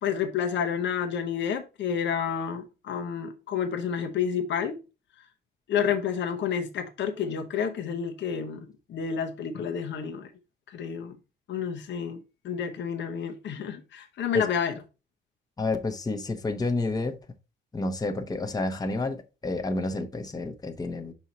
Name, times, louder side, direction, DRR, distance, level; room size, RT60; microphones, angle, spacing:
voice 1, 0.0-4.8 5.7-10.3 10.7-11.2 11.5-12.2 12.4-14.8, left 7 dB, 65° left, 1.0 m, -30 dB
voice 2, 15.6-17.2 17.7-21.1, left 2 dB, 20° left, 0.9 m, -30 dB
5.4 x 4.6 x 4.1 m
cardioid pair, 90°, 20 cm